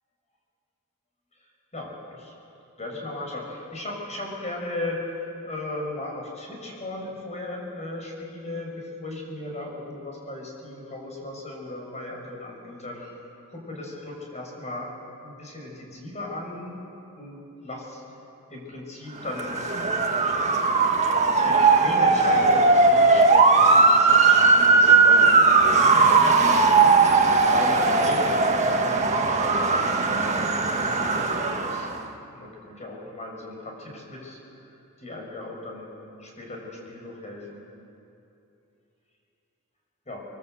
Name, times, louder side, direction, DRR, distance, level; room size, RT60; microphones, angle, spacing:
voice 1, 1.7-2.3 2.8-5.1 5.4-13.1 13.5-14.9 15.2-16.8 17.2-18.0 18.5-19.6 21.4-25.3 25.6-26.6 27.5-31.9 32.3-32.5 32.8-34.4 34.7-35.9 36.2-37.6 40.1-40.2, left 2 dB, 30° left, -1 dB, 6.3 m, -36 dB
Motor vehicle (road) / Siren, 19.3-32.0, right 4 dB, 30° right, 1.7 m, -19 dB
27.0 x 22.0 x 8.1 m, 2.8 s
head